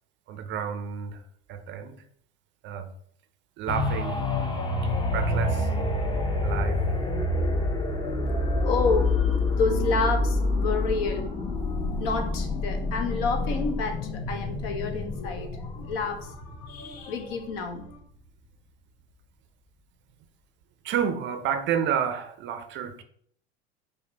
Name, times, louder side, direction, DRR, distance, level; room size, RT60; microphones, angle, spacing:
voice 1, 0.3-1.2 1.5-2.0 2.6-2.9 3.6-4.2 5.1-5.7 6.4-6.8 20.8-23.0, right 8 dB, 40° right, 0.5 m, -30 dB
sound 1, 3.7-17.3 17.8-17.9, left 2 dB, 15° left, 0.6 m, -27 dB
voice 2, 8.3-18.0, left 4 dB, 65° left, 0.9 m, -30 dB
5.1 x 2.2 x 4.0 m
hypercardioid pair, 90°, 31 cm